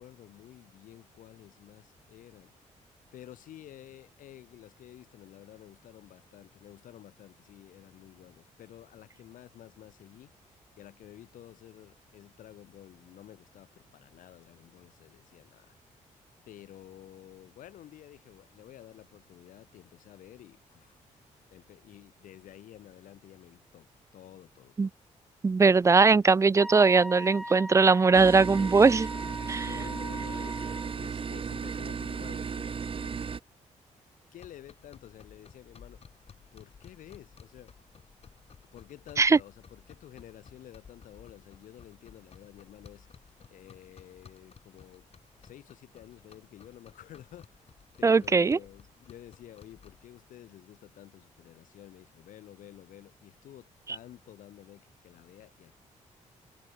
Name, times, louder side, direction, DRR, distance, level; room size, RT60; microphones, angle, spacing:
voice 1, 0.0-2.5 3.1-10.3 10.8-15.8 16.4-21.0 21.5-25.0 29.6-33.3 34.3-36.2 36.5-37.7 38.7-45.1 45.4-55.7, left 12 dB, 85° left, 2.8 m, -51 dB
voice 2, 25.4-29.1 29.5-29.7 39.2-39.4 48.0-48.6, right 4 dB, 20° right, 0.4 m, -20 dB
Wind instrument woodwind instrument, 26.6-31.0, equal, ahead, 1.7 m, -40 dB
sound 1, 28.1-33.4, right 6 dB, 40° right, 1.6 m, -35 dB
sound 2, 34.3-50.1, left 6 dB, 50° left, 4.4 m, -56 dB
cardioid pair, 90°, 13 cm